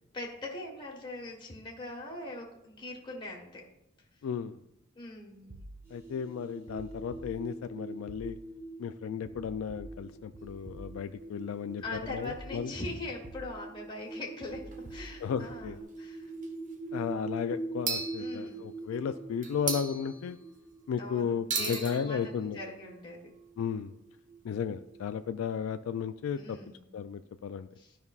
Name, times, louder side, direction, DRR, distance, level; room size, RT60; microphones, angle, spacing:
voice 1, 0.1-3.6 4.9-5.6 11.8-16.3 18.2-18.8 21.0-23.2 26.4-26.8 27.8-28.0, left 2 dB, 25° left, -2 dB, 1.3 m, -41 dB
voice 2, 4.2-4.6 5.9-8.4 8.8-11.8 12.1-12.7 15.2-15.8 16.9-20.4 20.9-22.6 23.6-23.9 24.4-26.6 26.9-27.7, left 7 dB, 90° left, 10 dB, 0.3 m, -34 dB
sound 1, 5.5-6.1 6.7-7.7 8.1-8.7 9.2-11.3 11.8-12.9 13.2-13.9 14.4-15.8, right 1 dB, 75° right, 1.1 m, -50 dB
sound 2, 5.8-22.1, right 2 dB, 10° right, 2.8 m, -43 dB
sound 3, 10.4-11.5 12.2-12.3 12.5-12.6 14.1-14.2 14.7-15.1 15.4-15.6 16.3-16.7 17.9-18.9 19.4-20.7 21.5-25.3, right 4 dB, 40° right, 1.0 m, -39 dB
13.0 x 5.4 x 2.4 m, 0.82 s
head